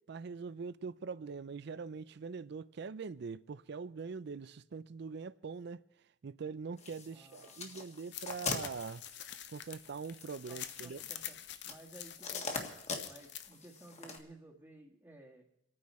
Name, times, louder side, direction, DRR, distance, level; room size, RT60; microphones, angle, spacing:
voice 1, 0.1-5.8 6.2-9.0 9.5-11.0, right 5 dB, 65° right, 0.4 m, -43 dB
sound 1, 6.8-14.2, left 4 dB, 35° left, 1.7 m, -44 dB
voice 2, 7.1-7.7 10.5-11.4 11.6-12.7 13.0-15.4, right 2 dB, 15° right, 1.6 m, -56 dB
sound 2, 8.1-13.5, left 11 dB, 65° left, 0.8 m, -47 dB
28.0 x 9.5 x 4.3 m
head